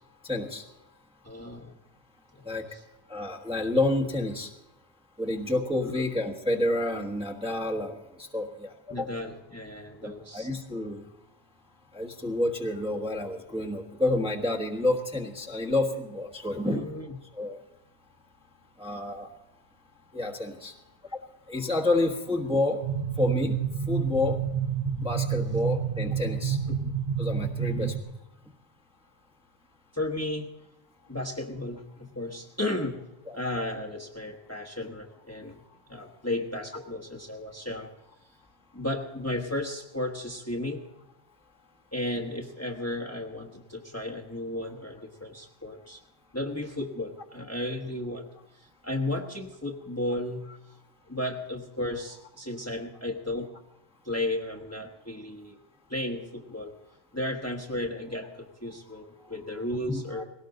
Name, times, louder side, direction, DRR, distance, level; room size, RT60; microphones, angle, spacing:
voice 1, 0.2-0.6 2.4-2.7 3.1-4.5 5.2-9.1 10.0-11.0 11.9-16.9 17.3-17.6 18.8-19.3 20.1-20.7 21.5-22.8 23.2-23.6 23.9-24.4 25.0-26.6 27.2-27.9 33.3-33.4 59.9-60.2, left 2 dB, 5° right, -1 dB, 1.3 m, -29 dB
voice 2, 1.2-1.7 2.3-2.8 5.9-6.0 8.9-10.5 16.6-17.2 26.8-26.9 27.6-27.9 29.9-30.5 31.1-33.0 33.3-35.6 35.9-37.9 38.7-40.8 41.9-46.0 46.3-48.3 48.5-50.5 51.1-53.5 54.0-55.6 55.9-56.7 57.1-60.2, left 1 dB, 15° left, 2 dB, 1.3 m, -34 dB
sound 1, 22.8-28.0, right 7 dB, 55° right, 1.6 m, -29 dB
20.0 x 17.5 x 3.9 m, 0.96 s
omnidirectional pair, 1.1 m